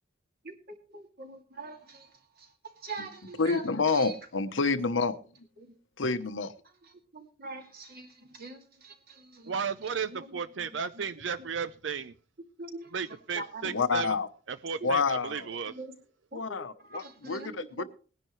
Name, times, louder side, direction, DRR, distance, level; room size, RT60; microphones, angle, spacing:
voice 1, 0.9-2.1 2.8-3.6 3.9-4.1 7.1-9.5 10.1-10.4 12.6-12.9 13.3-13.8 15.7-15.9 16.3-16.4 16.9-17.8, right 3 dB, 50° right, 2.5 m, -42 dB
voice 2, 3.4-5.2 6.0-6.5 13.6-14.3 14.8-15.5 16.3-17.8, left 4 dB, 75° left, 0.9 m, -28 dB
voice 3, 9.5-12.1 12.9-14.1 14.5-15.7, right 6 dB, 65° right, 0.5 m, -34 dB
19.5 x 10.5 x 3.2 m
head